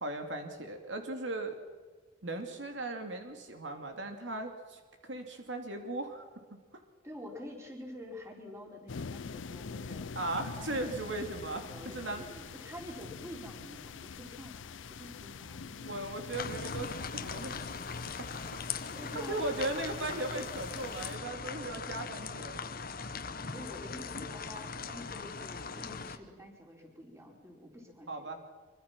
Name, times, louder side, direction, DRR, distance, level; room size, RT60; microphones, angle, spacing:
voice 1, 0.0-1.6 2.2-6.3 6.7-6.8 10.1-12.2 15.8-16.9 17.1-17.5 18.5-18.6 19.1-22.6 28.1-28.3, right 2 dB, 75° right, 4 dB, 2.6 m, -37 dB
voice 2, 7.0-10.1 10.6-11.3 11.6-16.1 16.6-17.8 18.9-19.4 23.5-28.4, left 1 dB, 15° right, 0 dB, 5.1 m, -48 dB
sound 1, 8.9-21.2, left 5 dB, 85° left, 0.6 m, -45 dB
sound 2, 16.3-26.2, left 5 dB, 50° left, 1.2 m, -40 dB
25.0 x 24.0 x 6.1 m, 1.5 s
head